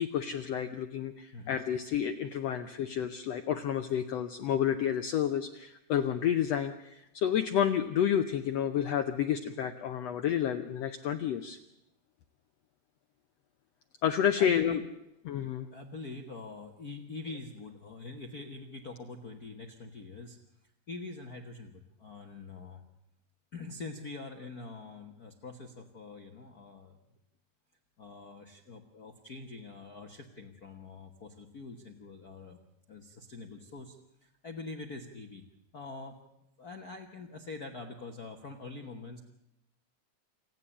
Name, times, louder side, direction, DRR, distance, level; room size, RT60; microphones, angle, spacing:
voice 1, 0.0-11.6 14.0-14.8 15.3-15.7, left 9 dB, 70° left, 7 dB, 1.6 m, -30 dB
voice 2, 14.4-14.9 15.7-20.4 20.9-22.8 23.5-27.0 28.0-32.6 32.9-35.4 35.7-36.2 36.6-39.2, left 3 dB, 50° left, 5 dB, 1.1 m, -44 dB
28.5 x 9.5 x 10.0 m, 0.85 s
omnidirectional pair, 3.7 m